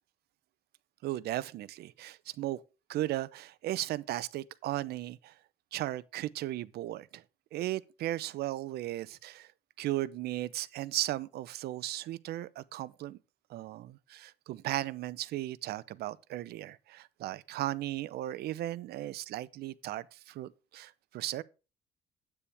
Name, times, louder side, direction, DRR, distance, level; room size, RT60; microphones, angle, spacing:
voice 1, 1.0-2.6 2.9-5.3 5.7-7.2 7.5-9.5 9.8-13.2 13.5-21.4, right 15 dB, 70° right, 0.7 m, -36 dB
9.9 x 8.5 x 3.4 m
cardioid pair, 110°, 17 cm